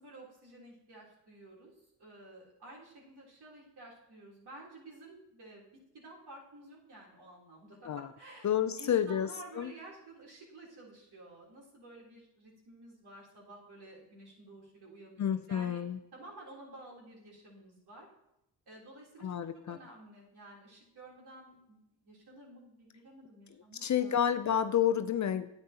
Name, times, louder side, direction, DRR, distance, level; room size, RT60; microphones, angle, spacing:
voice 1, 0.0-1.7 2.0-8.5 8.8-15.8 16.1-18.1 18.7-24.2, right 2 dB, 60° right, -4 dB, 3.6 m, -52 dB
voice 2, 8.4-9.3 9.6-9.7 15.2-16.0 19.2-19.8 23.8-25.5, left 9 dB, 40° left, 11 dB, 0.5 m, -29 dB
10.0 x 8.2 x 2.9 m, 0.82 s
supercardioid pair, 65°, 44 cm